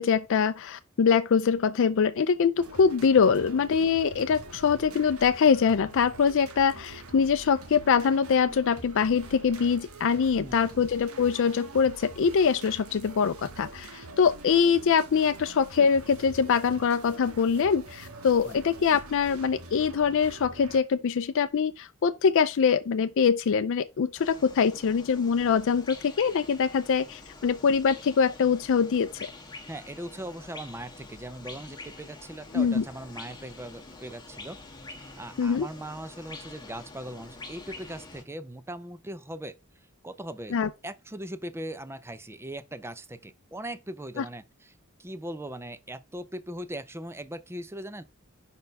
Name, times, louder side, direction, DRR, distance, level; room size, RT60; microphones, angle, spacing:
voice 1, 0.0-29.3 32.5-32.8 35.4-35.7 40.5-40.7 44.2-44.3, left 6 dB, 60° left, 0.4 m, -24 dB
sound 1, 2.6-20.8, right 2 dB, 80° right, 1.4 m, -45 dB
sound 2, 24.1-38.2, left 3 dB, 20° left, 1.3 m, -46 dB
voice 2, 29.7-34.6 35.0-39.6 40.0-40.6 40.8-44.7 45.0-48.0, right 1 dB, 10° right, 0.6 m, -39 dB
5.3 x 4.4 x 5.2 m
head